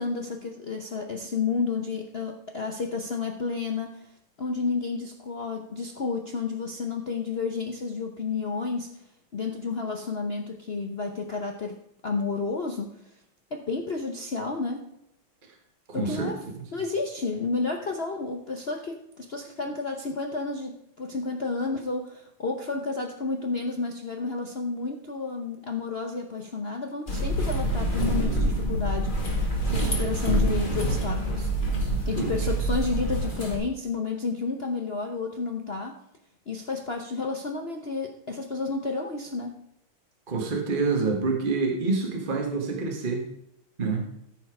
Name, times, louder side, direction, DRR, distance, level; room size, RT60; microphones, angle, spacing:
voice 1, 0.0-4.0 4.4-8.9 9.3-11.8 12.0-13.0 13.5-14.9 15.9-16.4 16.7-29.2 29.7-31.5 32.0-36.0 36.5-39.6, left 4 dB, 70° left, 3 dB, 0.5 m, -31 dB
voice 2, 15.9-16.6 32.1-32.3 40.3-43.3 43.8-44.0, right 4 dB, 25° right, 0 dB, 1.5 m, -27 dB
sound 1, 27.1-33.6, right 1 dB, 25° left, 2.0 m, -26 dB
14.0 x 5.6 x 4.8 m, 0.79 s
omnidirectional pair, 2.4 m